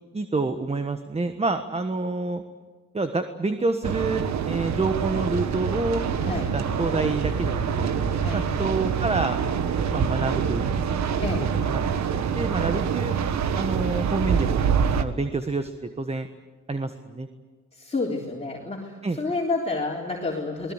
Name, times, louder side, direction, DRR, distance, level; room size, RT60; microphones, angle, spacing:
voice 1, 0.1-2.4 2.9-7.9 8.3-9.4 9.9-11.0 11.7-11.8 12.3-13.1 13.5-14.6 15.0-16.3 16.7-17.3 19.0-19.2, right 3 dB, 20° right, 9 dB, 1.4 m, -28 dB
sound 1, 3.8-15.0, right 7 dB, 65° right, 1.6 m, -25 dB
Subway metro underground, 4.5-12.0, left 7 dB, 50° left, 1.9 m, -41 dB
voice 2, 17.7-20.7, left 3 dB, 20° left, -2 dB, 3.7 m, -29 dB
27.5 x 20.0 x 8.1 m, 1.5 s
cardioid pair, 90°, 30 cm